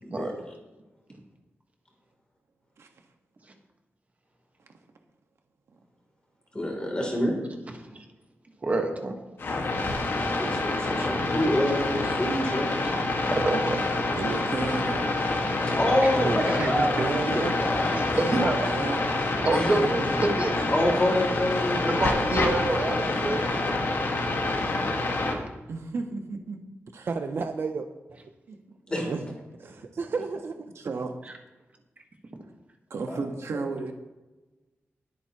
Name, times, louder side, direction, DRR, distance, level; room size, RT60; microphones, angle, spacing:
voice 1, 0.0-0.3 6.5-7.3 10.4-12.7 15.8-18.4 19.5-20.0 20.7-22.1 28.9-29.1 33.1-33.2, left 1 dB, 20° left, 0 dB, 3.2 m, -27 dB
voice 2, 8.6-9.1 10.9-11.1 12.5-12.6 13.3-13.9 16.5-16.7 18.0-18.5 19.4-20.6 21.9-23.4, right 2 dB, 30° right, 3 dB, 1.5 m, -27 dB
sound 1, 9.4-25.4, left 2 dB, 55° left, 1.7 m, -27 dB
voice 3, 14.1-15.1 18.2-19.0 25.7-26.6 26.9-27.1 28.5-28.6 29.6-29.8 30.8-31.1 32.9-33.9, right 3 dB, 80° right, 4 dB, 1.5 m, -33 dB
voice 4, 16.2-17.5 27.1-27.8 29.0-29.3 29.6-30.5, right 4 dB, 50° right, 6 dB, 0.7 m, -31 dB
20.5 x 8.4 x 3.0 m, 1.1 s
wide cardioid pair, 170°, 5 cm